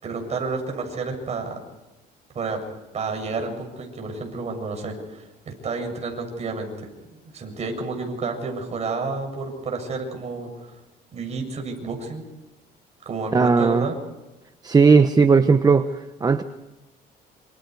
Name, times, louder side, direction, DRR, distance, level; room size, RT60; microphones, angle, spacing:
voice 1, 0.0-1.6 2.3-2.7 2.9-10.7 11.1-12.2 13.1-14.0, right 4 dB, 40° right, 3 dB, 7.3 m, -30 dB
voice 2, 13.3-13.9 14.6-16.4, right 4 dB, 25° right, 9 dB, 1.0 m, -17 dB
27.5 x 26.5 x 4.8 m, 1.0 s
cardioid pair, 110°, 17 cm